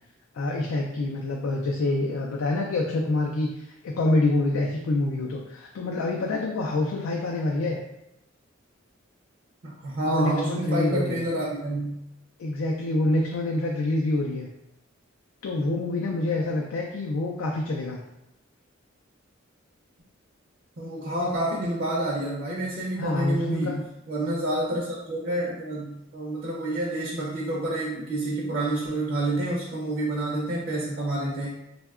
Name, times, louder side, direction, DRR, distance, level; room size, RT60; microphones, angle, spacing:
voice 1, 0.3-7.8 10.0-11.2 12.4-14.5 15.4-18.0 23.0-23.8, left 2 dB, 85° left, -1 dB, 0.4 m, -26 dB
voice 2, 9.6-12.0 20.8-31.5, right 1 dB, 50° right, -4 dB, 0.5 m, -28 dB
3.5 x 2.1 x 2.3 m, 0.87 s
head